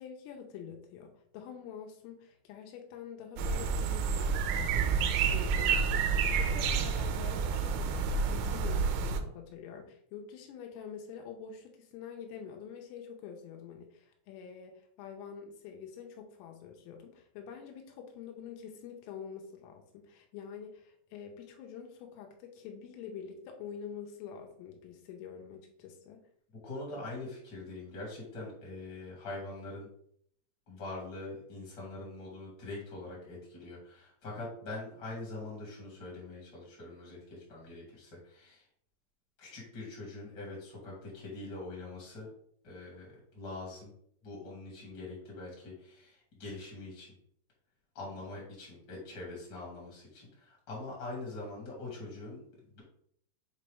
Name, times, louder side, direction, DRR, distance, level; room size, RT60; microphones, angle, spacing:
voice 1, 0.0-4.4 4.7-26.2, left 7 dB, 85° left, 3 dB, 3.3 m, -46 dB
sound 1, 3.4-9.2, right 5 dB, 90° right, 3.3 m, -29 dB
voice 2, 26.6-29.9 30.7-38.6 39.4-42.3 42.6-43.1 43.3-43.9 44.2-47.1 47.9-52.4 52.7-52.8, left 2 dB, 45° left, -4 dB, 1.3 m, -43 dB
7.5 x 4.0 x 3.4 m, 0.65 s
omnidirectional pair, 5.9 m